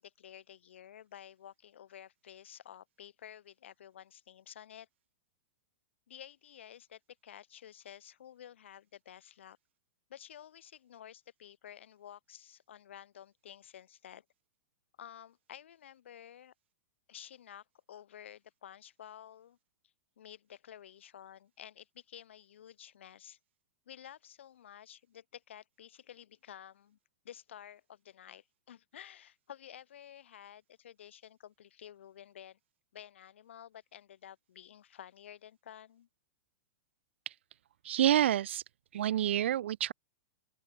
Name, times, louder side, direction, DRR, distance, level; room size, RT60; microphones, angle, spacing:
voice 1, 0.0-4.9 6.1-9.6 10.1-14.2 15.0-16.5 17.1-19.6 20.2-23.4 23.9-27.0 27.2-32.6 32.9-36.1, left 10 dB, 75° left, 2.5 m, -52 dB
voice 2, 37.8-38.6 38.9-39.9, right 11 dB, 70° right, 0.4 m, -28 dB
open air
supercardioid pair, 175°, 6 cm